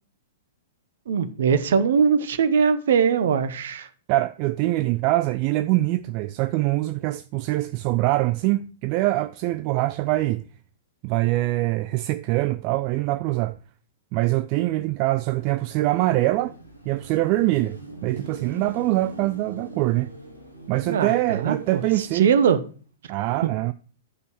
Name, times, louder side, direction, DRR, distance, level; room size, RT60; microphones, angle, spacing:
voice 1, 1.1-3.9 20.9-22.6, right 6 dB, 60° right, 0.9 m, -21 dB
voice 2, 4.1-10.4 11.0-13.6 14.1-16.5 16.9-20.1 20.7-22.3 23.1-23.7, right 18 dB, 40° right, 0.4 m, -24 dB
Car passing by / Traffic noise roadway noise / Engine, 15.4-22.7, equal, 90° left, 1.9 m, -42 dB
10.0 x 5.4 x 4.7 m
figure-of-eight pair, 105°, 0 cm